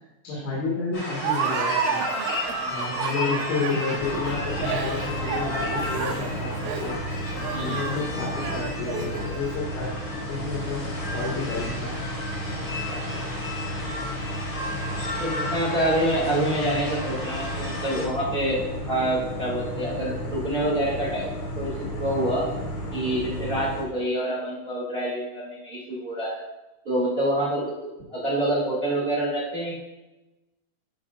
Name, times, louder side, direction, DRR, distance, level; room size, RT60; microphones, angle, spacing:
voice 1, 0.2-2.1 2.7-7.0 7.6-9.9 10.3-10.9 11.1-12.0, left 3 dB, 80° left, -6 dB, 4.0 m, -30 dB
sound 1, 0.9-18.0, left 2 dB, 25° left, 2.4 m, -34 dB
Laughter, 1.2-9.5, right 6 dB, 90° right, 3.4 m, -31 dB
voice 2, 2.6-2.9 7.5-7.8 12.6-13.0 15.2-18.6 18.9-22.5 22.9-26.5 26.8-29.7, right 1 dB, 70° right, -6 dB, 0.5 m, -27 dB
sound 2, 4.0-23.8, equal, 55° left, 1.6 m, -33 dB
14.0 x 5.1 x 2.5 m, 1.0 s
omnidirectional pair, 5.5 m